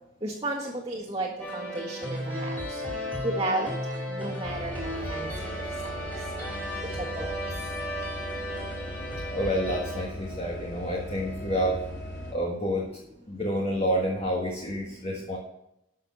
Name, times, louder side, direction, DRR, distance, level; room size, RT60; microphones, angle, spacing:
voice 1, 0.2-2.6 3.2-3.7 4.1-5.3 5.8-6.0 7.2-7.3, right 2 dB, 25° right, -6 dB, 1.7 m, -32 dB
sound 1, 1.4-10.0, equal, 10° left, 3.0 m, -35 dB
sound 2, 4.4-12.3, equal, 55° left, 2.4 m, -38 dB
voice 2, 9.3-11.8 12.3-13.0 13.3-15.4, equal, 30° left, -3 dB, 1.6 m, -29 dB
12.5 x 6.6 x 5.5 m, 0.83 s
head